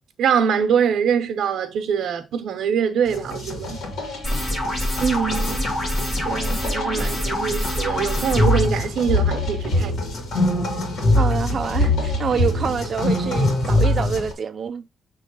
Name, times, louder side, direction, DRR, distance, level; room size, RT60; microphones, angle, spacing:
voice 1, 0.2-3.8 6.2-10.0, right 7 dB, 85° right, 0.7 m, -23 dB
sound 1, 3.1-14.3, left 1 dB, 70° left, 2.2 m, -24 dB
sound 2, 4.2-8.6, left 1 dB, 30° left, 4.1 m, -25 dB
voice 2, 5.0-5.6 6.9-7.0 11.2-14.8, right 6 dB, 40° right, 0.4 m, -26 dB
6.7 x 3.1 x 5.3 m
wide cardioid pair, 165°, 0 cm